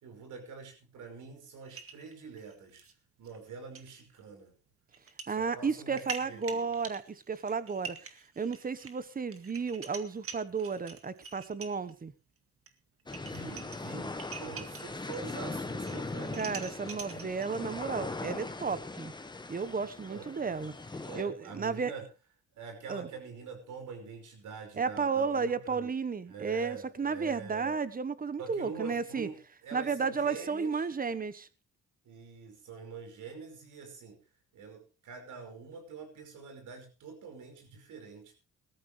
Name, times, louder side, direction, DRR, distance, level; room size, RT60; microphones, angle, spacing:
voice 1, 0.0-2.8 3.2-4.5 5.3-6.7 13.2-16.4 20.1-20.6 21.0-22.1 22.5-25.9 26.3-27.8 28.4-30.9 32.0-34.2 34.5-38.3, right 5 dB, 80° right, 5 dB, 5.2 m, -45 dB
sound 1, 1.6-2.9 3.2-3.4 3.7-3.9 4.9-5.3 5.7-11.9 12.7-12.8 13.0-15.4 15.7-17.6, right 5 dB, 50° right, 2.0 m, -45 dB
voice 2, 5.3-12.1 16.3-19.1 19.5-20.7 21.2-21.9 22.9-23.1 24.8-29.3 29.7-31.5, right 5 dB, 30° right, 15 dB, 1.2 m, -33 dB
sound 2, 13.1-21.2, left 3 dB, 15° left, 1.5 m, -40 dB
19.5 x 13.5 x 3.3 m, 0.31 s
cardioid pair, 90°, 30 cm